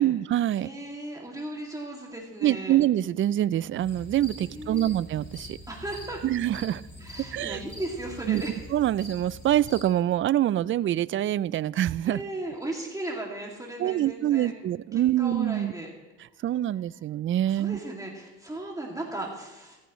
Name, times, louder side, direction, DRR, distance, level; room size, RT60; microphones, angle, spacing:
voice 1, 0.0-0.7 2.4-5.6 6.2-6.8 7.3-7.6 8.3-8.4 8.7-12.2 13.8-15.7 16.4-17.8, right 12 dB, 40° right, 19 dB, 0.4 m, -25 dB
voice 2, 0.6-2.8 4.4-4.9 5.7-6.2 7.0-8.6 12.1-14.5 14.9-15.9 17.5-19.8, right 1 dB, 10° right, -1 dB, 2.4 m, -36 dB
sound 1, 3.8-9.8, equal, 30° left, 4.0 m, -44 dB
14.5 x 14.0 x 3.1 m, 1.1 s
supercardioid pair, 75°, 33 cm